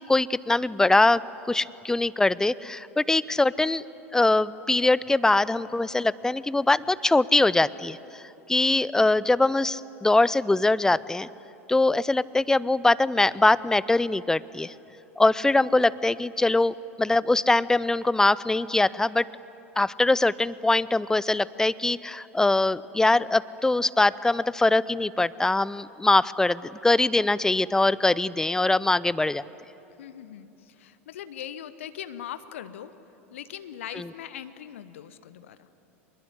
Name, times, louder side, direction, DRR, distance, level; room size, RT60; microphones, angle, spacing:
voice 1, 0.1-1.2 1.5-3.8 4.1-8.0 8.5-11.3 11.7-14.7 15.2-19.3 19.8-29.4 34.0-34.1, left 2 dB, 10° left, 20 dB, 0.5 m, -22 dB
voice 2, 30.0-32.9 33.3-35.7, left 10 dB, 65° left, 13 dB, 0.9 m, -40 dB
25.0 x 21.5 x 9.7 m, 3.0 s
figure-of-eight pair, 80°, 7 cm